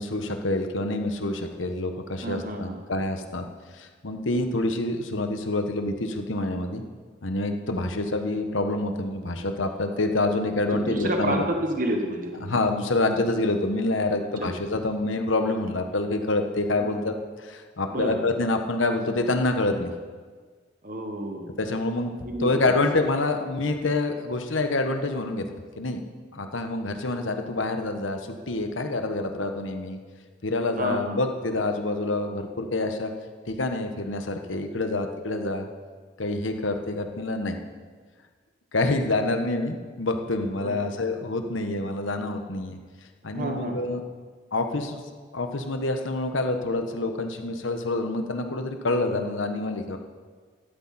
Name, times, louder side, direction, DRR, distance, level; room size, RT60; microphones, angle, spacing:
voice 1, 0.0-3.4 3.7-6.8 7.2-11.4 12.4-17.1 17.4-19.9 21.6-22.1 22.4-25.5 25.8-26.0 26.3-30.0 30.4-33.1 33.5-35.7 36.2-37.6 38.7-42.8 43.2-44.0 44.5-45.0 45.3-50.0, left 2 dB, 85° left, 5 dB, 1.2 m, -27 dB
voice 2, 2.2-2.8 7.7-7.8 10.7-12.5 14.4-14.5 16.8-17.0 17.9-18.2 20.8-21.5 22.2-22.8 30.8-31.2 40.6-40.8 43.3-43.8, right 1 dB, 45° right, 3 dB, 1.4 m, -30 dB
13.0 x 12.5 x 4.3 m, 1.5 s
head